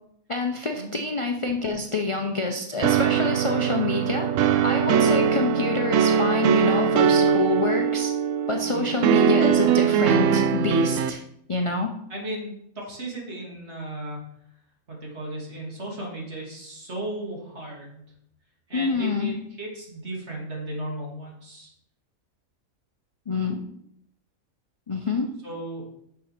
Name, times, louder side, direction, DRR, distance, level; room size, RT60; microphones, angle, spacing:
voice 1, 0.3-4.3 4.6-8.1 8.5-11.2 11.5-11.9 18.7-19.4 23.3-23.6 24.9-25.3, left 3 dB, 35° left, 3 dB, 0.5 m, -27 dB
sound 1, 2.8-11.1, right 7 dB, 70° right, 0.9 m, -21 dB
voice 2, 8.6-8.9 12.1-14.2 14.9-18.0 18.7-21.7 25.4-25.8, right 1 dB, 50° right, -2 dB, 2.8 m, -35 dB
6.6 x 6.4 x 5.8 m, 0.74 s
omnidirectional pair, 1.5 m